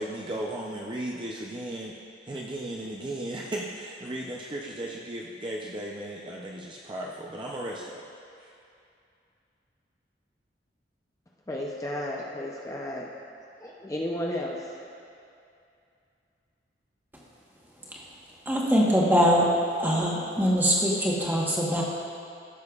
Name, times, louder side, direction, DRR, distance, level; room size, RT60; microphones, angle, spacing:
voice 1, 0.0-2.0 2.3-8.0 8.4-8.5, right 1 dB, 25° right, -2 dB, 0.5 m, -35 dB
voice 2, 11.5-13.1 13.6-14.6, left 1 dB, 20° left, -2 dB, 0.6 m, -33 dB
voice 3, 18.5-19.5 19.8-21.8, equal, 10° right, -4 dB, 1.2 m, -23 dB
15.5 x 6.4 x 2.4 m, 2.5 s
head